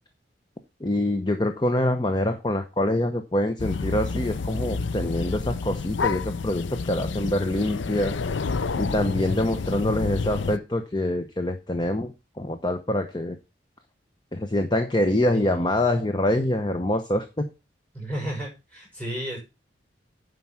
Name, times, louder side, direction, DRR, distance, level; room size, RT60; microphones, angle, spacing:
voice 1, 0.8-8.2 8.8-13.4 14.3-17.5, left 1 dB, 25° left, 6 dB, 0.8 m, -25 dB
sound 1, 3.6-10.6, left 4 dB, 80° left, 0.5 m, -29 dB
voice 2, 15.3-15.8 17.9-19.4, right 1 dB, 10° left, -2 dB, 6.0 m, -33 dB
9.2 x 5.4 x 6.0 m, 0.27 s
head